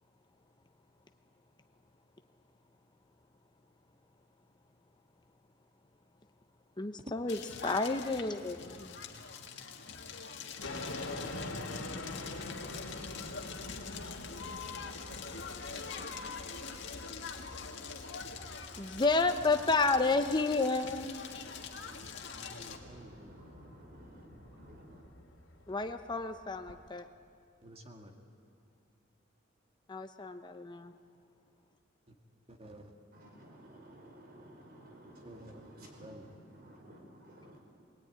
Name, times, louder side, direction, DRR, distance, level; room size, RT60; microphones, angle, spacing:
voice 1, 6.8-9.0 18.8-21.3 25.7-27.1 29.9-30.9, left 3 dB, 25° left, 0.8 m, -31 dB
Crackle, 7.3-22.8, left 5 dB, 65° left, 2.0 m, -44 dB
sound 1, 10.6-26.9, left 2 dB, 80° left, 2.4 m, -46 dB
voice 2, 19.0-19.3 21.8-22.0 22.4-23.3 27.6-28.2 32.1-32.2 32.5-32.9 35.2-35.7 36.0-36.3, right 1 dB, 30° right, 2.1 m, -52 dB
voice 3, 22.6-25.0 33.1-36.2 36.5-37.6, right 1 dB, 50° right, 5.1 m, -54 dB
22.0 x 20.0 x 9.5 m
head